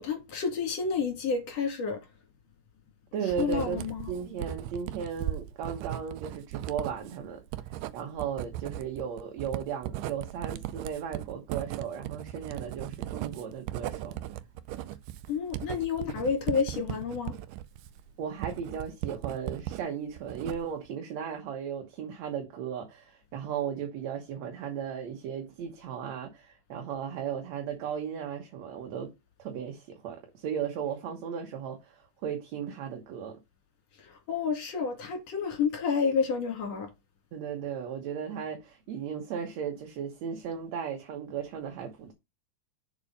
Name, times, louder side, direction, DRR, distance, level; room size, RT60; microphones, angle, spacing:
voice 1, 0.0-2.0 3.4-4.1 15.3-17.4 34.0-36.9, left 5 dB, 55° left, 3.4 m, -30 dB
voice 2, 3.1-3.8 4.1-14.2 18.2-29.1 29.4-33.4 37.3-42.1, right 7 dB, 65° right, 2.2 m, -36 dB
Writing, 3.3-19.8 20.2-20.9, right 13 dB, 85° right, 2.2 m, -37 dB
6.9 x 5.4 x 5.3 m
omnidirectional pair, 3.7 m